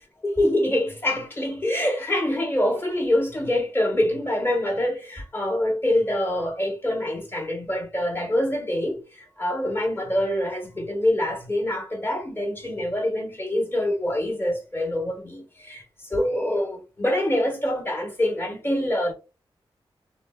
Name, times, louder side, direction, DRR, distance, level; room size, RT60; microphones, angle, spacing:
voice 1, 0.2-19.1, left 1 dB, 20° left, 1.2 m, -25 dB
3.5 x 2.1 x 2.3 m
cardioid pair, 75°, 10 cm